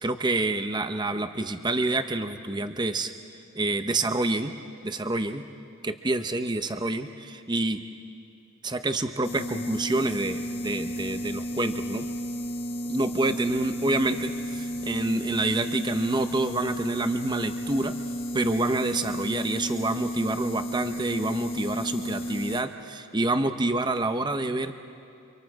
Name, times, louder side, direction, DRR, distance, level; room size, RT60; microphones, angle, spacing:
voice 1, 0.0-3.1 3.5-4.5 4.8-5.4 5.8-7.8 8.6-12.1 12.9-17.9 18.3-24.7, right 2 dB, 20° right, 8 dB, 0.7 m, -27 dB
sound 1, 9.2-22.6, equal, 25° left, 1.2 m, -33 dB
29.5 x 26.0 x 4.8 m, 2.6 s
head